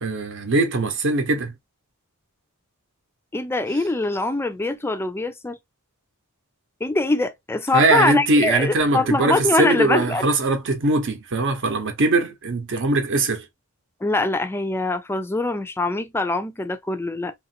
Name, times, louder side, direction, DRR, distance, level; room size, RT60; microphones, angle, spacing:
voice 1, 0.0-1.5 7.7-13.4, right 2 dB, 55° right, 0.8 m, -21 dB
voice 2, 3.3-5.6 6.8-10.2 14.0-17.3, left 2 dB, 10° left, 0.3 m, -23 dB
2.8 x 2.4 x 2.6 m
head